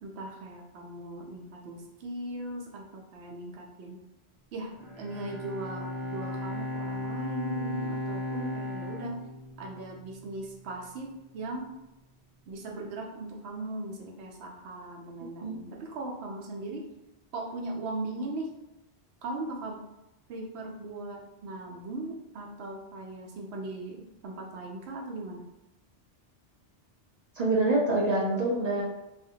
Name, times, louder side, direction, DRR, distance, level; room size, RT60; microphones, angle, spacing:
voice 1, 0.0-4.0 4.5-9.2 9.6-11.7 12.5-16.9 17.3-18.5 19.2-19.8 20.3-25.4, right 2 dB, 75° right, 0 dB, 0.8 m, -38 dB
Bowed string instrument, 4.7-10.2, left 1 dB, 10° right, 1.0 m, -36 dB
voice 2, 27.4-28.8, right 2 dB, 55° right, -2 dB, 0.4 m, -26 dB
2.3 x 2.1 x 2.7 m, 0.93 s
omnidirectional pair, 1.1 m